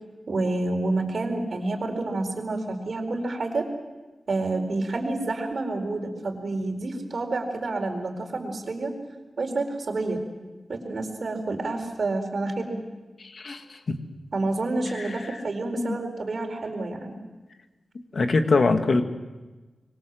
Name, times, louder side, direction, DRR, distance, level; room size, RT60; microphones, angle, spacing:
voice 1, 0.3-3.7 4.3-8.9 9.4-10.2 10.7-12.8 14.3-17.2, right 2 dB, 50° right, 3 dB, 4.5 m, -29 dB
voice 2, 13.2-14.0 15.0-15.4 15.8-16.0 18.1-19.0, left 3 dB, 50° left, 6 dB, 1.9 m, -24 dB
25.5 x 23.5 x 7.7 m, 1.2 s
wide cardioid pair, 150°, 0 cm